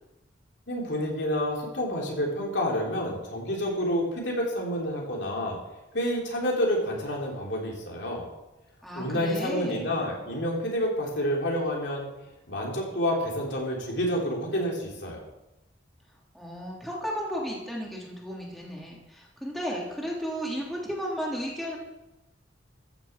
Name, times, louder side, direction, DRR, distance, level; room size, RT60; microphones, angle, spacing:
voice 1, 0.7-5.6 5.9-8.3 8.9-12.1 12.5-15.3, equal, 65° left, -1 dB, 3.7 m, -29 dB
voice 2, 8.8-10.0 16.3-21.8, equal, ahead, -3 dB, 3.0 m, -34 dB
14.0 x 7.3 x 7.4 m, 0.97 s
head